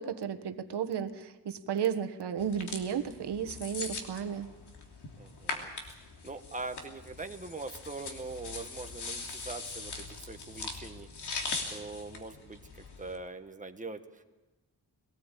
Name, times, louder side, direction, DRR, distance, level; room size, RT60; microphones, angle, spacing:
voice 1, 0.0-4.5, right 8 dB, 75° right, 7 dB, 1.4 m, -33 dB
sound 1, 2.4-13.1, left 4 dB, 70° left, 3.2 m, -41 dB
voice 2, 5.2-6.0 6.2-11.1 11.7-14.2, right 3 dB, 20° right, 6 dB, 1.2 m, -42 dB
22.0 x 18.5 x 8.3 m, 1.1 s
wide cardioid pair, 160°, 41 cm